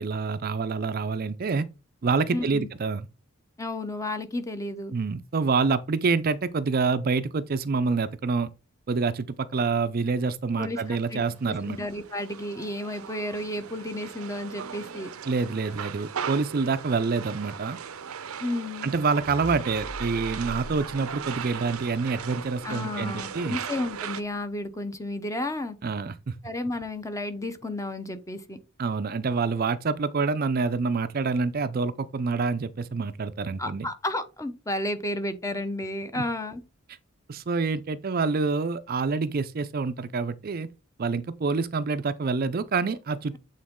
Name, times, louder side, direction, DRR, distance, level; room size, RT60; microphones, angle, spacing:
voice 1, 0.0-1.7 2.0-3.0 4.9-8.5 8.9-11.8 15.3-17.8 18.8-23.6 25.8-26.4 28.8-33.9 36.1-36.2 37.3-40.7 41.0-43.3, right 4 dB, 45° right, 0.4 m, -27 dB
voice 2, 2.3-2.7 3.6-4.9 10.6-15.1 18.4-18.9 22.6-25.8 26.4-28.6 33.6-36.6, left 1 dB, 15° left, 0.8 m, -32 dB
sound 1, 10.7-24.2, right 7 dB, 90° right, 0.6 m, -38 dB
sound 2, 19.2-23.7, equal, 75° left, 1.7 m, -43 dB
8.5 x 3.9 x 3.6 m
head